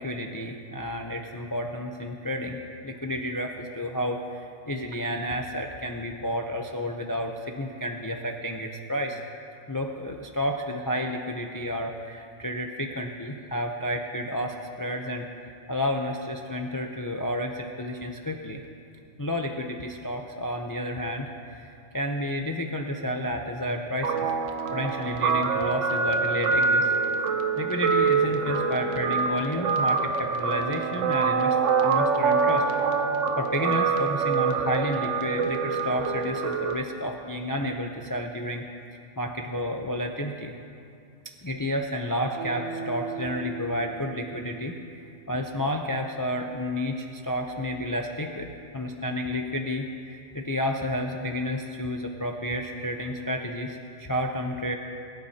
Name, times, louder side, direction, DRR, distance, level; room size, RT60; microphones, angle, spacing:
voice 1, 0.0-2.6 2.8-9.2 9.7-18.6 19.2-24.3 24.7-26.9 27.6-32.7 33.4-38.6 39.2-40.5 41.2-48.5 48.7-54.7, equal, 25° left, 3 dB, 0.4 m, -31 dB
Guitar, 24.0-36.7, right 5 dB, 70° right, 1.1 m, -25 dB
Guitar 2, 42.3-45.6 46.0-46.1, right 8 dB, 45° right, 2.4 m, -40 dB
21.0 x 11.5 x 2.8 m, 2.5 s
omnidirectional pair, 1.3 m